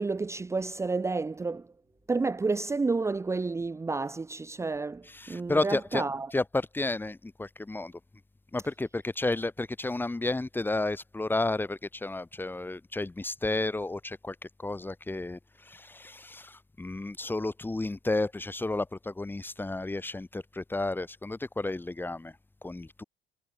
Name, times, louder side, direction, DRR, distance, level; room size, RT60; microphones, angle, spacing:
voice 1, 0.0-1.7 2.1-6.3, right 3 dB, 15° right, 0.8 m, -30 dB
voice 2, 5.1-6.0 6.3-7.9 8.5-22.3 22.6-23.0, left 2 dB, 10° left, 1.2 m, -32 dB
cardioid pair, 110°, 17 cm